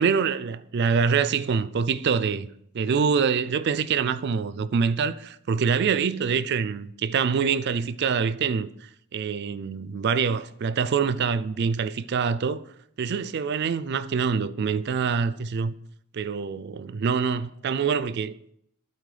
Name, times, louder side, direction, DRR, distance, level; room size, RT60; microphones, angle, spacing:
voice 1, 0.0-12.6 13.0-15.7 16.1-18.5, right 6 dB, 50° right, 0.4 m, -25 dB
12.0 x 4.3 x 4.9 m
head